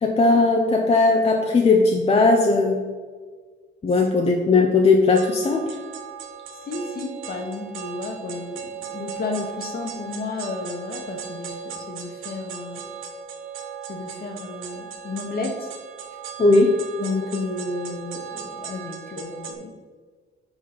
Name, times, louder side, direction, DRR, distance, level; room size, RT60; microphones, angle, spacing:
voice 1, 0.0-2.8 3.8-5.8 16.4-16.8, left 3 dB, 30° left, 2 dB, 0.6 m, -18 dB
sound 1, 5.2-19.6, right 7 dB, 90° right, 0.8 m, -37 dB
voice 2, 6.5-12.9 13.9-15.7 17.0-19.7, left 3 dB, 50° left, 3 dB, 1.2 m, -32 dB
5.1 x 4.0 x 5.9 m, 1.5 s
cardioid pair, 90°, 20 cm